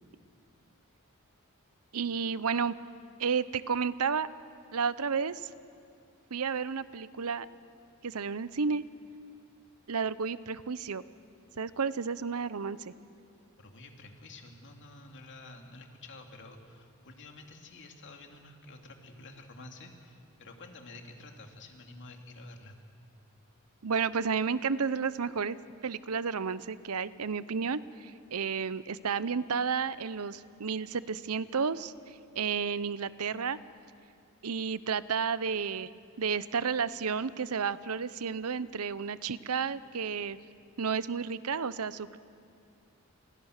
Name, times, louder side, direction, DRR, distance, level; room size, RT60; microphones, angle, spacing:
voice 1, 1.9-2.8 3.2-4.3 4.7-5.5 6.3-7.5 8.0-8.8 9.9-11.0 11.6-12.9 23.8-25.6 25.8-33.6 34.4-35.9 36.2-40.4 40.8-42.2, right 6 dB, 90° right, 16 dB, 0.8 m, -32 dB
voice 2, 13.6-22.8, left 2 dB, 55° left, 3 dB, 2.8 m, -50 dB
30.0 x 28.0 x 6.6 m, 2.4 s
head